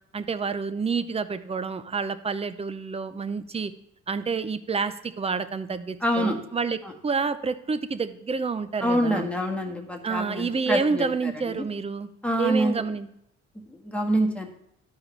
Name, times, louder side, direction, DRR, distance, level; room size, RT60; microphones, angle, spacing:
voice 1, 0.1-3.7 4.1-6.8 7.0-9.3 10.0-12.1 12.4-13.1, right 5 dB, 20° right, 12 dB, 0.6 m, -28 dB
voice 2, 6.0-6.4 8.8-11.6 12.2-12.8 13.7-14.5, equal, 5° left, 0 dB, 1.5 m, -26 dB
13.0 x 4.8 x 3.2 m, 0.76 s
cardioid pair, 90°, 30 cm